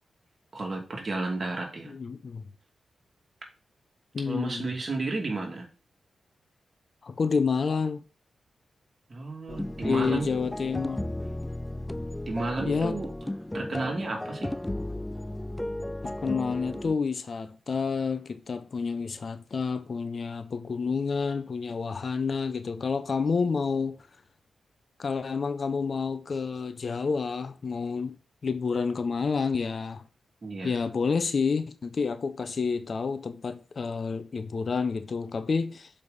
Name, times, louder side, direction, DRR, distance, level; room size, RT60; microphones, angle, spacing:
voice 1, 0.5-1.9 4.3-5.7 9.1-10.3 12.3-13.1 13.5-14.5 30.4-30.7, right 3 dB, 45° right, 2.6 m, -32 dB
voice 2, 1.9-2.5 4.1-4.7 7.0-8.0 9.8-11.1 12.6-13.0 16.0-24.0 25.0-28.2 28.4-30.1 30.6-35.9, left 5 dB, 55° left, 0.7 m, -29 dB
sound 1, 9.5-16.9, left 1 dB, 15° left, 0.4 m, -34 dB
6.7 x 5.2 x 4.2 m
cardioid pair, 50°, 0 cm